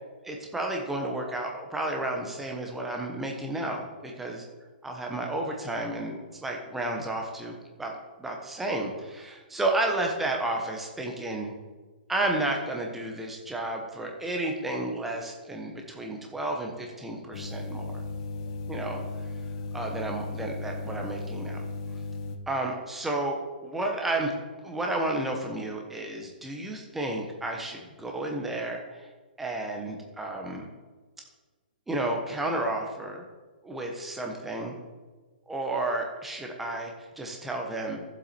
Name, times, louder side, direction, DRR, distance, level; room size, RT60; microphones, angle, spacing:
voice 1, 0.2-4.4 4.8-7.9 8.2-11.5 12.1-18.0 18.7-19.0 19.7-21.7 22.5-24.3 24.6-29.1 29.4-30.6 31.9-33.2 33.6-34.8 35.5-38.0, right 2 dB, 5° right, 1 dB, 1.0 m, -32 dB
sound 1, 17.3-22.4, left 3 dB, 30° left, 0.8 m, -36 dB
13.5 x 7.5 x 4.3 m, 1.3 s
hypercardioid pair, 170°, 5 cm